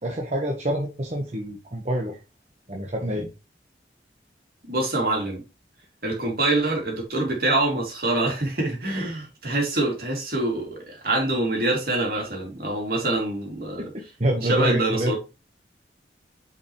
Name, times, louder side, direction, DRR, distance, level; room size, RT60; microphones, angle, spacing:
voice 1, 0.0-2.2 2.7-3.3 13.8-13.9 14.2-15.1, right 1 dB, 40° right, 1.2 m, -26 dB
voice 2, 4.6-5.4 6.0-13.9 14.4-15.2, right 2 dB, 55° right, 2.9 m, -25 dB
8.7 x 5.1 x 3.1 m
head